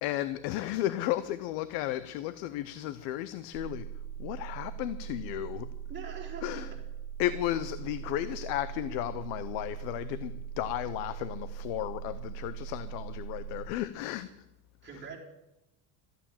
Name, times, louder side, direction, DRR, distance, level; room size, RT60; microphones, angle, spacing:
voice 1, 0.0-3.9 4.2-5.7 6.4-6.7 7.2-14.3, left 14 dB, 85° left, 14 dB, 0.8 m, -34 dB
sound 1, 3.5-13.7, right 9 dB, 65° right, 1.9 m, -41 dB
voice 2, 5.9-6.8 14.8-15.2, right 6 dB, 25° right, -3 dB, 4.0 m, -43 dB
14.0 x 8.9 x 8.8 m, 0.94 s
cardioid pair, 160°, 45 cm